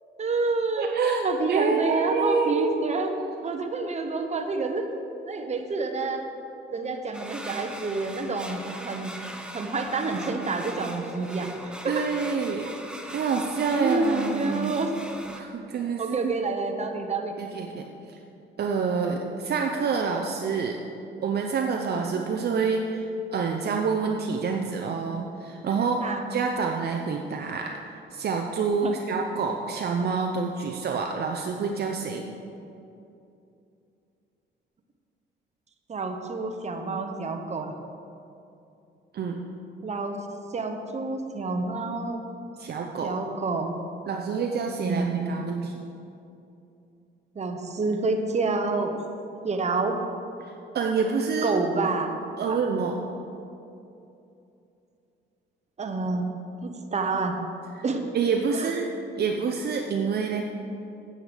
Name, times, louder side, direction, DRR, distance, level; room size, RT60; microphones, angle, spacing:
voice 1, 0.2-0.9 1.2-3.1 3.4-4.9 5.3-6.3 6.7-9.1 9.5-12.0 13.8-14.9 16.0-17.4 26.0-26.2 28.8-29.0 35.9-37.7 39.8-40.2 40.5-42.2 43.0-43.8 44.8-45.4 47.3-49.0 49.4-50.0 51.4-52.2 52.4-52.6 55.8-56.3 56.6-57.4 57.8-58.0 58.5-58.7, right 3 dB, 35° right, 5 dB, 1.0 m, -28 dB
voice 2, 0.8-2.8 11.9-12.7 13.1-14.8 15.3-16.3 17.4-17.8 18.6-20.8 21.2-23.0 23.3-27.8 28.1-32.3 39.1-39.4 42.6-43.1 44.1-45.7 50.4-50.5 50.7-51.5 52.4-53.0 57.8-57.9 58.1-60.5, right 5 dB, 55° right, 2 dB, 0.7 m, -27 dB
sound 1, 7.1-15.4, right 1 dB, 5° right, 0.9 m, -40 dB
9.3 x 8.1 x 5.1 m, 2.7 s
cardioid pair, 90°, 20 cm